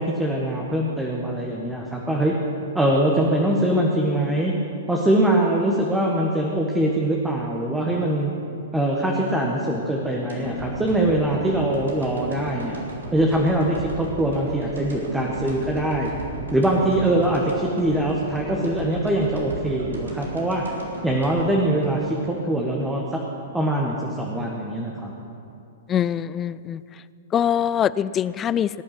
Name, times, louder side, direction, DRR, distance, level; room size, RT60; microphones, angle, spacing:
voice 1, 0.0-2.3 2.7-4.5 4.9-8.3 8.7-12.8 13.1-16.1 16.5-20.6 21.0-23.2 23.5-25.1, right 1 dB, 5° right, -2 dB, 1.6 m, -23 dB
sound 1, 10.3-22.5 22.9-23.0, right 2 dB, 80° right, 3.0 m, -36 dB
voice 2, 25.9-26.8 27.3-28.7, left 9 dB, 25° left, 18 dB, 0.3 m, -23 dB
19.0 x 9.5 x 6.0 m, 2.7 s
figure-of-eight pair, 110°, 0 cm